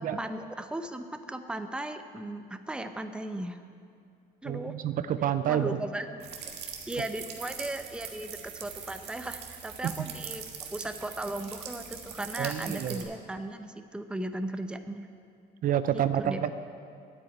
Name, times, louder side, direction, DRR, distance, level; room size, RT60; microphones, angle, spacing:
voice 1, 0.2-3.6 4.4-4.7 5.2-6.3 6.9-15.1 15.9-16.5, right 1 dB, 5° right, 8 dB, 0.7 m, -37 dB
voice 2, 4.4-5.7 9.8-9.9 12.4-13.0 15.6-16.5, right 10 dB, 55° right, 11 dB, 0.5 m, -28 dB
sound 1, 6.2-13.0, right 7 dB, 80° right, 1.6 m, -42 dB
9.0 x 8.7 x 9.4 m, 2.5 s
cardioid pair, 110°, 17 cm